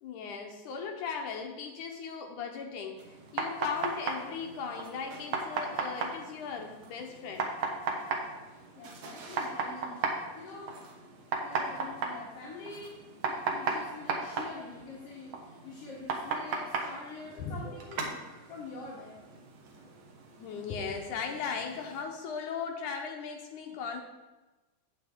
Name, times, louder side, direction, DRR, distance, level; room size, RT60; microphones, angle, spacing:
voice 1, 0.0-7.5 17.4-17.8 20.4-24.0, left 6 dB, 70° left, 3 dB, 2.1 m, -37 dB
sound 1, 3.0-22.0, right 4 dB, 65° right, 1.8 m, -37 dB
voice 2, 8.7-10.0 10.3-10.7 11.4-13.0 13.3-19.3, left 3 dB, 55° left, -6 dB, 2.2 m, -45 dB
9.4 x 8.3 x 3.6 m, 1.1 s
omnidirectional pair, 4.1 m